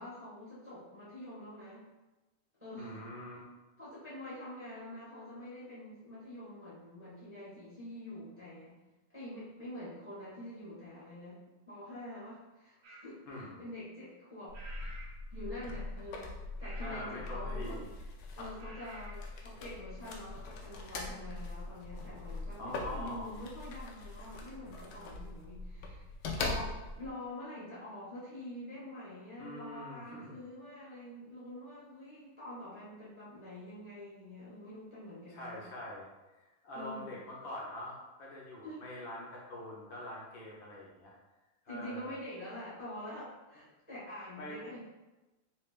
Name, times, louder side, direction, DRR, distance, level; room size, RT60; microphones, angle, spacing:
voice 1, 0.0-1.9 2.6-3.1 3.8-8.8 9.1-11.4 11.6-14.6 15.3-17.8 18.3-26.1 26.3-35.6 36.7-37.2 38.6-38.8 41.7-44.8, left 1 dB, 10° right, -10 dB, 0.9 m, -46 dB
voice 2, 2.8-3.4 13.3-13.6 16.8-17.9 18.4-18.5 22.6-23.3 29.4-30.4 35.3-36.1 36.4-41.1 41.7-42.1 44.4-44.6, left 1 dB, 70° left, -5 dB, 1.6 m, -44 dB
sound 1, 12.8-13.1 14.5-15.2 15.5-15.9 16.6-17.2 18.6-19.2, right 2 dB, 70° right, 0.7 m, -51 dB
sound 2, 14.5-27.1, left 2 dB, 90° left, 1.5 m, -42 dB
3.8 x 3.3 x 2.4 m, 1.1 s
omnidirectional pair, 2.2 m